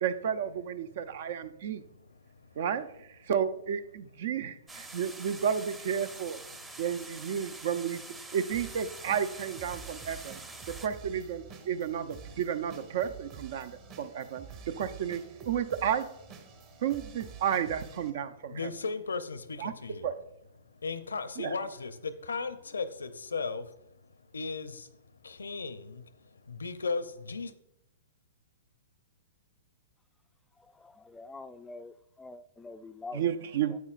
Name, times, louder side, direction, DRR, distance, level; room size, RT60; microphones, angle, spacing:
voice 1, 0.0-1.8 2.6-2.9 3.2-6.4 6.8-8.0 8.3-10.4 10.7-14.5 14.8-16.0 16.8-18.7 19.6-19.7 20.0-20.1 21.4-21.6 33.1-33.7, right 8 dB, 60° right, 0.6 m, -32 dB
sound 1, 4.7-10.9, right 2 dB, 15° right, 0.8 m, -46 dB
sound 2, 8.5-18.1, right 7 dB, 40° right, 1.5 m, -49 dB
voice 2, 18.5-20.1 20.8-23.6 24.3-24.9 25.2-26.0 26.5-27.5, left 4 dB, 85° left, 0.6 m, -36 dB
voice 3, 30.6-33.2 33.7-33.8, left 3 dB, 10° left, 0.4 m, -46 dB
9.5 x 8.3 x 2.5 m
hypercardioid pair, 120°, 0 cm